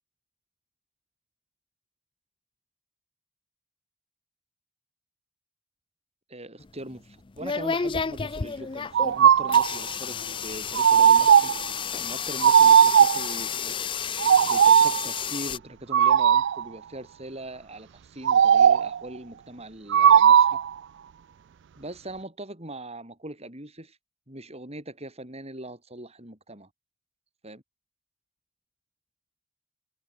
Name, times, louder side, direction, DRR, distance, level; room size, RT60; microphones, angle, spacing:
voice 1, 6.3-11.5 12.0-13.8 14.4-20.6 21.8-24.0 24.3-26.7 27.4-27.6, right 1 dB, 30° right, 7.7 m, -41 dB
sound 1, 6.6-15.6, left 6 dB, 25° left, 0.4 m, -32 dB
sound 2, 8.9-9.8 10.7-11.7 12.4-13.3 14.2-15.0 15.9-16.6 18.2-19.0 19.9-20.7, right 8 dB, 55° right, 0.3 m, -17 dB
open air
head